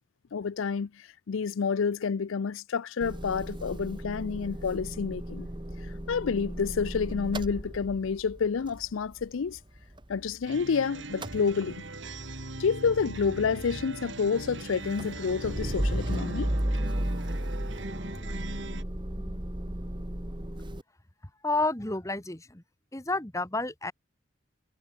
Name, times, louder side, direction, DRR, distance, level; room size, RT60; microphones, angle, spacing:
voice 1, 0.3-5.5 6.1-9.6 10.1-11.8 12.6-16.5, left 5 dB, 80° left, 0.5 m, -29 dB
Motor vehicle (road) / Engine starting / Idling, 3.0-10.7 11.0-20.8, right 1 dB, 25° right, 1.7 m, -35 dB
sound 1, 10.5-18.8, right 2 dB, 70° right, 3.1 m, -41 dB
voice 2, 19.1-19.8 21.4-22.6 22.9-23.9, left 2 dB, 15° left, 1.3 m, -31 dB
head